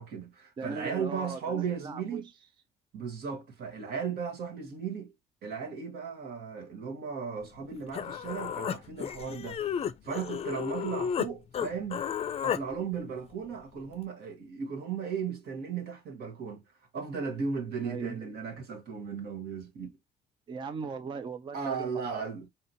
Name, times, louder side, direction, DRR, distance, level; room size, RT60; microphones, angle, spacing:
voice 1, 0.0-2.3 2.9-5.1 5.4-9.6 10.0-12.0 12.4-16.6 16.9-20.0 21.5-22.5, right 6 dB, 70° right, 1.3 m, -36 dB
voice 2, 0.6-2.2 17.8-18.2 20.5-22.2, right 5 dB, 30° right, 0.4 m, -38 dB
Human voice, 7.6-7.7 7.9-11.3 11.5-12.6, left 8 dB, 35° left, 0.4 m, -33 dB
4.2 x 2.8 x 2.6 m
cardioid pair, 110°, 17 cm